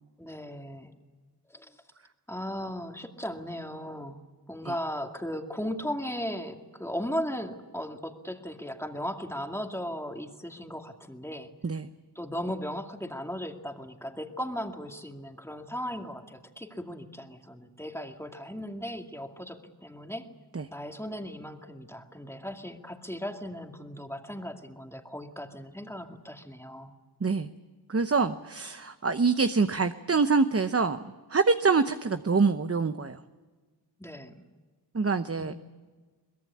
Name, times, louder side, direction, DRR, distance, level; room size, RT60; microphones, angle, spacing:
voice 1, 0.2-0.9 1.5-1.8 2.3-4.2 4.5-11.5 12.2-20.3 20.7-26.9 34.0-34.3 35.4-35.5, equal, 5° left, 4 dB, 2.3 m, -37 dB
voice 2, 27.9-31.0 31.3-33.2 34.9-35.5, right 4 dB, 35° right, 9 dB, 0.9 m, -25 dB
23.0 x 21.5 x 8.6 m, 1.4 s
wide cardioid pair, 70°, 39 cm